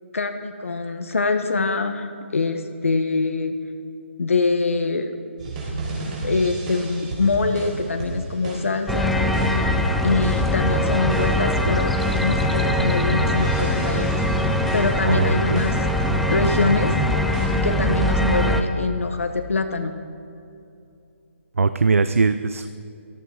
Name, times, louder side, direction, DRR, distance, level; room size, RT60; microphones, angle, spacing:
voice 1, 0.1-3.5 4.2-5.1 6.2-9.2 10.0-11.9 12.2-14.1 14.7-15.9 16.3-16.9 17.5-19.9, left 4 dB, 80° left, 6 dB, 1.2 m, -24 dB
sound 1, 5.4-17.5, right 2 dB, 35° right, 4.2 m, -31 dB
sound 2, 8.9-18.6, left 1 dB, ahead, 0.5 m, -22 dB
voice 2, 15.0-15.4 21.6-22.8, right 4 dB, 85° right, 12 dB, 0.5 m, -20 dB
17.0 x 13.0 x 4.8 m, 2.7 s
hypercardioid pair, 155°, 7 cm